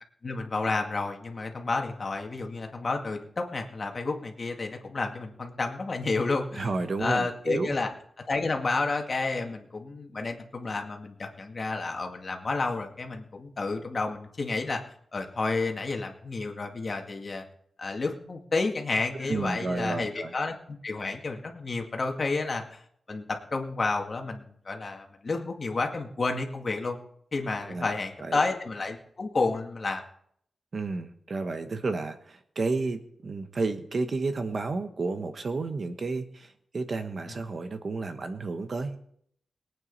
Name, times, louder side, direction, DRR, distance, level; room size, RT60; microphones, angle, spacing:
voice 1, 0.2-6.7 7.0-7.9 8.3-14.8 15.1-17.4 17.8-20.5 20.8-22.8 23.1-27.0 27.3-30.0, left 3 dB, 40° left, 3 dB, 2.1 m, -30 dB
voice 2, 6.5-7.8 19.3-20.3 27.7-27.9 28.2-28.4 30.7-39.0, right 3 dB, 50° right, 8 dB, 1.2 m, -31 dB
22.0 x 9.2 x 4.1 m, 0.67 s
wide cardioid pair, 115°, 0 cm